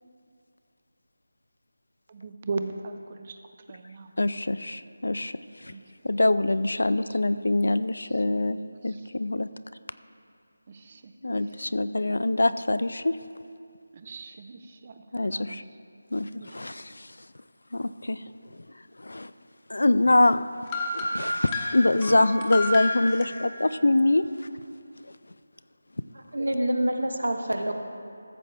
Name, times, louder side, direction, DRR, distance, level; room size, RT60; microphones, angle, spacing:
voice 1, 2.1-3.4 3.7-4.1 5.7-5.8 7.1-7.2 8.0-8.2 8.8-9.1 10.7-11.4 13.9-15.6 16.4-16.7, right 3 dB, 35° right, 8 dB, 0.5 m, -38 dB
voice 2, 4.2-5.3 5.6-5.7 6.0-9.5 11.2-13.1 15.1-15.6 16.1-17.1 17.7-18.2 19.0-19.3 19.7-20.4 20.9-24.3, left 2 dB, 75° left, 14 dB, 0.3 m, -24 dB
sound 1, 20.7-23.3, left 2 dB, 20° left, 1.0 m, -30 dB
voice 3, 26.1-27.7, right 1 dB, 85° right, 4 dB, 1.0 m, -27 dB
14.0 x 7.3 x 3.3 m, 2.4 s
figure-of-eight pair, 165°, 0 cm